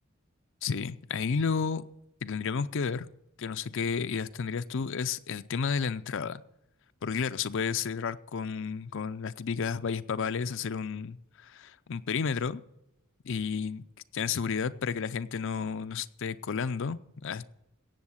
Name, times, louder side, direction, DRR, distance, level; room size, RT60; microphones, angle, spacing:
voice 1, 0.6-1.8 2.2-3.1 3.4-6.4 7.0-12.6 13.2-13.8 14.1-17.5, left 6 dB, 60° left, 0.5 m, -32 dB
17.0 x 7.0 x 7.2 m
head